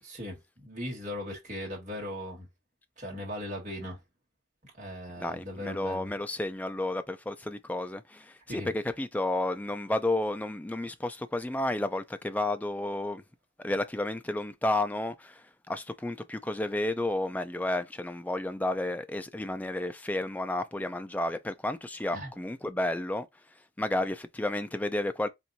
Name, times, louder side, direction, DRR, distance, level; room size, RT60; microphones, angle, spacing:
voice 1, 0.0-2.5 3.0-4.0 4.7-6.1 8.5-8.7 22.1-22.3, left 1 dB, 40° right, 1.6 m, -38 dB
voice 2, 5.2-13.2 13.6-25.3, left 1 dB, 10° left, 0.3 m, -32 dB
4.4 x 2.6 x 2.6 m
head